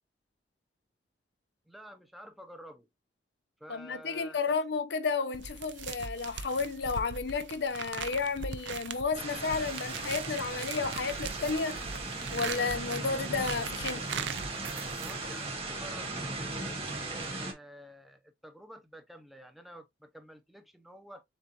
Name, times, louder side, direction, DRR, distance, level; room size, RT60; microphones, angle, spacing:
voice 1, 1.7-2.9 3.6-4.5 12.6-12.7 13.0-13.1 15.0-21.2, equal, ahead, 0.6 m, -50 dB
voice 2, 3.7-11.8 12.3-14.0, left 4 dB, 70° left, 0.6 m, -32 dB
sound 1, 5.3-15.5, right 6 dB, 85° right, 0.5 m, -41 dB
sound 2, 9.1-17.5, right 2 dB, 30° right, 1.5 m, -37 dB
7.1 x 2.5 x 2.9 m
head